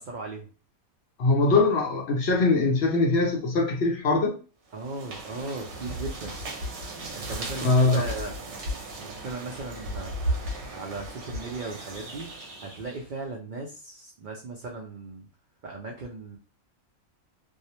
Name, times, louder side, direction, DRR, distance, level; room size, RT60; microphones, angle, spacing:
voice 1, 0.1-0.5 4.7-6.4 7.1-8.6 9.0-10.4 10.7-12.3 12.6-15.3 15.6-16.4, right 3 dB, 90° right, 0.4 m, -37 dB
voice 2, 1.2-4.4 7.6-8.0, left 3 dB, 60° left, 0.7 m, -22 dB
sound 1, 4.7-13.1, right 1 dB, 60° right, 0.9 m, -35 dB
2.5 x 2.0 x 2.8 m
omnidirectional pair, 1.5 m